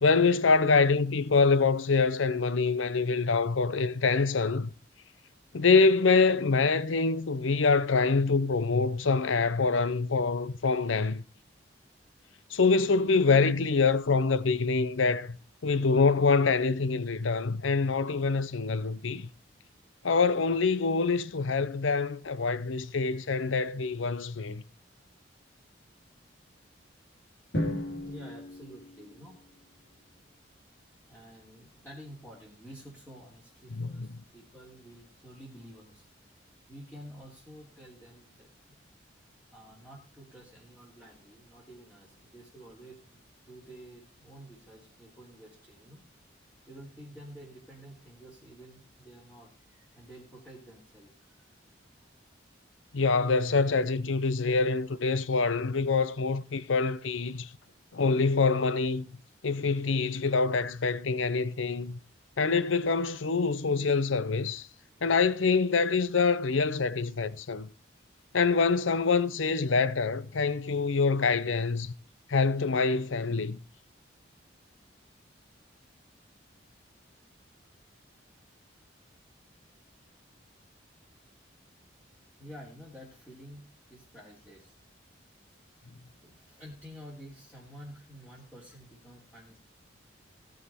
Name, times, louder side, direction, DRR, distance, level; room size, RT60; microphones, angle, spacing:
voice 1, 0.0-4.7 5.5-11.2 12.5-15.4 15.6-19.3 20.0-24.6 33.7-34.1 52.9-57.5 57.9-59.1 59.4-62.0 62.4-64.7 65.0-67.7 68.3-71.9 72.3-73.6, left 4 dB, 85° left, 0.7 m, -25 dB
Drum, 27.5-29.7, left 1 dB, 65° left, 2.9 m, -35 dB
voice 2, 28.0-29.4 31.1-36.1 36.7-38.8 39.5-43.2 43.4-46.0 46.7-51.5 52.0-52.1 82.4-83.6 83.9-84.7 85.4-85.6 86.2-89.6, equal, 10° left, 3.0 m, -50 dB
17.0 x 6.6 x 4.3 m
head